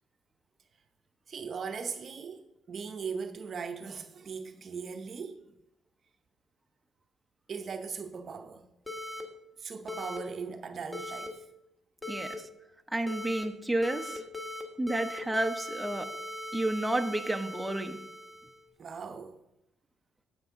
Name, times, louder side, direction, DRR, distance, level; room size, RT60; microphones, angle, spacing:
voice 1, 1.3-5.4 7.5-8.7 9.6-11.4 18.8-19.4, right 5 dB, 50° right, 0.7 m, -39 dB
sound 1, 8.9-9.2 9.9-10.2 10.9-11.3 12.0-12.3 13.1-13.4 13.8-14.6 14.9-18.6, left 1 dB, 15° left, 1.5 m, -40 dB
voice 2, 12.1-12.4 12.9-14.2 14.8-16.1 16.5-18.0, right 1 dB, 5° right, 0.8 m, -31 dB
15.5 x 5.4 x 3.7 m
cardioid pair, 90°, 0 cm